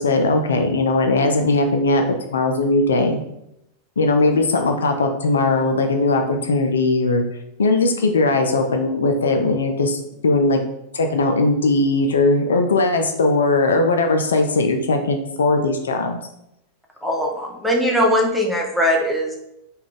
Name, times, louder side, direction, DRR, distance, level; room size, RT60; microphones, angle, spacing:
voice 1, 0.0-3.2 4.0-7.2 7.6-10.6 10.9-16.2, left 2 dB, 70° left, 5 dB, 0.3 m, -19 dB
voice 2, 17.0-19.4, equal, ahead, -1 dB, 0.6 m, -20 dB
3.3 x 2.3 x 3.5 m, 0.83 s
figure-of-eight pair, 90°, 0 cm